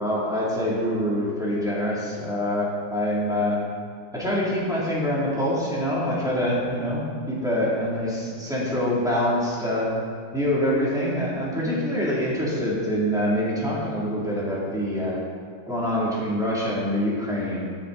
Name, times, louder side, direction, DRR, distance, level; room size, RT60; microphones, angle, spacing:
voice 1, 0.0-3.6 4.1-9.9 10.3-15.2 15.7-17.7, equal, ahead, -7 dB, 2.3 m, -25 dB
14.0 x 6.7 x 3.8 m, 2.1 s
omnidirectional pair, 1.8 m